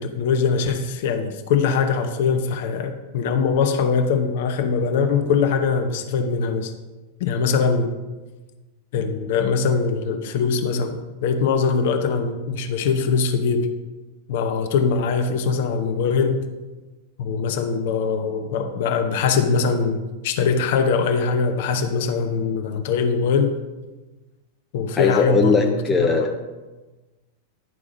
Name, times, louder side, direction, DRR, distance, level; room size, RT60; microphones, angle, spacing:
voice 1, 0.0-6.7 7.2-7.9 8.9-10.9 11.2-13.7 14.3-16.4 17.2-23.5 24.7-26.3, left 5 dB, 50° left, 6 dB, 0.8 m, -22 dB
voice 2, 25.0-26.4, left 4 dB, 15° left, 1 dB, 0.6 m, -19 dB
11.0 x 4.8 x 5.0 m, 1.2 s
figure-of-eight pair, 90°, 0 cm